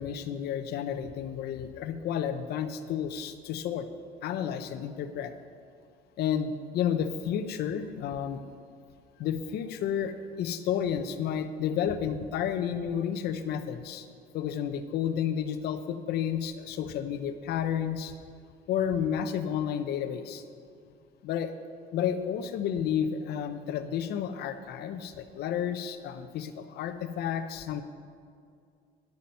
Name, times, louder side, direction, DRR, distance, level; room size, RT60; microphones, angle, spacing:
voice 1, 0.0-3.9 4.2-5.3 6.2-8.4 9.2-14.1 14.3-18.1 18.7-20.4 21.2-21.5 21.9-27.8, left 8 dB, 75° left, 9 dB, 0.7 m, -31 dB
11.0 x 8.5 x 5.4 m, 2.3 s
cardioid pair, 110°, 17 cm